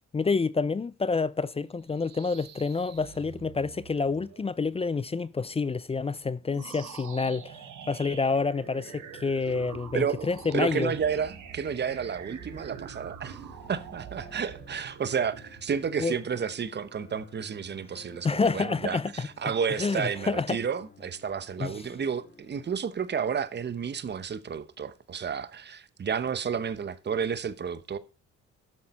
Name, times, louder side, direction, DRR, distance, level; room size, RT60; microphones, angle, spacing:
voice 1, 0.1-7.6 7.9-10.9 16.0-16.2 18.2-19.5 19.8-20.6 21.6-21.7, left 4 dB, 20° left, 0.4 m, -28 dB
sound 1, 1.7-4.6, right 10 dB, 55° right, 1.0 m, -51 dB
sound 2, 6.5-16.0, right 8 dB, 80° right, 2.0 m, -45 dB
sound 3, 8.3-23.2, left 3 dB, 40° left, 1.7 m, -55 dB
voice 2, 9.9-10.3 10.5-28.0, right 7 dB, 35° right, 0.9 m, -31 dB
12.0 x 6.6 x 4.2 m
cardioid pair, 90°, 30 cm